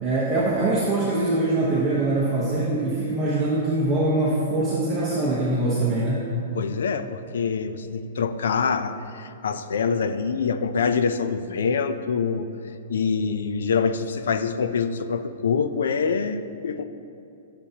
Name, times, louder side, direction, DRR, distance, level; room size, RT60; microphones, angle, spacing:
voice 1, 0.0-6.3, right 2 dB, 10° right, -8 dB, 1.1 m, -23 dB
voice 2, 6.5-12.5 12.9-16.9, left 5 dB, 75° left, 10 dB, 0.6 m, -25 dB
18.5 x 6.8 x 2.9 m, 2.8 s
hypercardioid pair, 175°, 0 cm